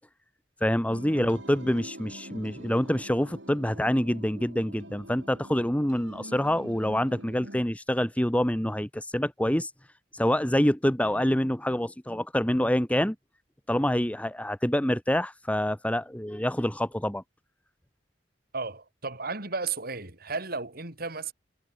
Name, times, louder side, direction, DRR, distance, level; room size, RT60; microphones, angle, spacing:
voice 1, 0.6-9.7 10.1-13.1 13.7-17.2, equal, 10° left, 1.4 m, -26 dB
sound 1, 0.9-7.6, right 1 dB, 85° right, 8.0 m, -45 dB
voice 2, 18.5-21.3, right 4 dB, 55° right, 5.2 m, -34 dB
head